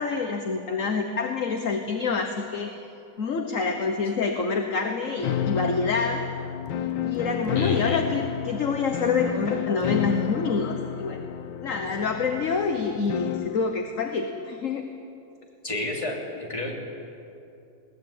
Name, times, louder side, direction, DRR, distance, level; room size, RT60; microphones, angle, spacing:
voice 1, 0.0-2.7 3.2-6.3 7.0-11.3 11.6-14.9, left 4 dB, 45° left, 5 dB, 1.4 m, -27 dB
sound 1, 5.2-13.6, left 9 dB, 80° left, 1.5 m, -31 dB
voice 2, 7.5-8.0 15.6-16.8, left 2 dB, 15° left, -1 dB, 3.3 m, -30 dB
21.0 x 18.5 x 8.9 m, 2.7 s
omnidirectional pair, 2.1 m